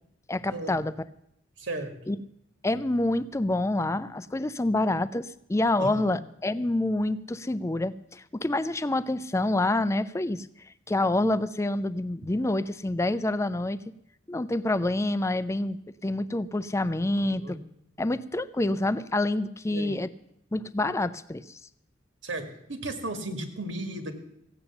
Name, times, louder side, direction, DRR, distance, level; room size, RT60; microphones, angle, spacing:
voice 1, 0.3-0.9 2.1-2.2 2.6-10.5 10.9-13.8 14.3-17.6 18.0-20.1 20.5-21.6, left 2 dB, 15° left, 15 dB, 0.4 m, -27 dB
voice 2, 1.6-1.9 5.8-6.2 17.1-17.6 19.7-20.0 22.2-22.4 22.7-24.1, right 2 dB, 80° right, 6 dB, 2.0 m, -35 dB
15.5 x 8.8 x 7.1 m, 0.78 s
head